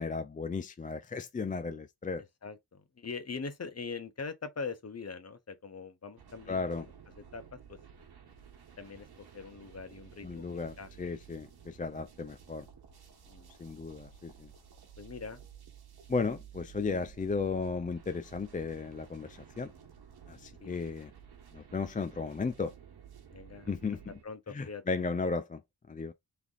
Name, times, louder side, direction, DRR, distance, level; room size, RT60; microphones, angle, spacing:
voice 1, 0.0-2.2 6.5-6.8 10.2-12.7 13.6-14.5 16.1-19.7 20.3-21.1 21.5-22.7 23.7-24.0 24.5-25.6 25.9-26.1, left 4 dB, 20° left, 0.4 m, -35 dB
voice 2, 2.4-7.8 8.8-11.1 13.3-13.6 15.0-15.4 20.6-20.8 23.3-23.7 24.2-24.8, left 4 dB, 40° left, 0.9 m, -43 dB
sound 1, 6.2-24.2, right 8 dB, 75° right, 1.2 m, -54 dB
3.5 x 3.4 x 3.9 m
wide cardioid pair, 95°, 38 cm